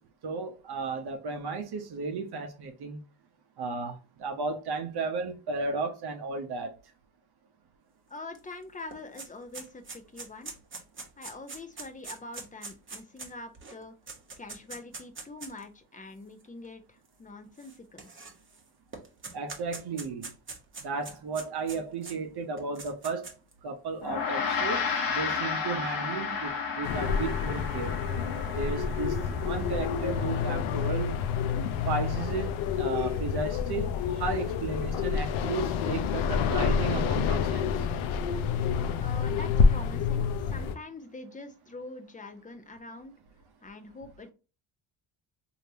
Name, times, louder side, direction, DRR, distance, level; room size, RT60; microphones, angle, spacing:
voice 1, 0.2-3.0 3.6-6.7 19.3-20.3 20.8-23.3 23.6-24.8 25.1-28.0 28.5-31.1 31.9-32.5 32.8-37.7, right 4 dB, 50° right, 0.8 m, -34 dB
voice 2, 8.1-10.5 11.2-13.9 14.4-18.1 39.0-43.1 43.6-44.3, left 2 dB, 15° left, 0.7 m, -44 dB
sound 1, 8.4-8.5 8.7-15.6 16.4-16.5 17.6-18.6 18.9-22.2 22.6-23.5, right 4 dB, 25° right, 1.0 m, -43 dB
Gong, 24.0-33.6, left 5 dB, 45° left, 1.1 m, -34 dB
sound 2, 26.8-40.7, left 6 dB, 75° left, 0.6 m, -28 dB
3.2 x 2.8 x 2.7 m
supercardioid pair, 80°, 49 cm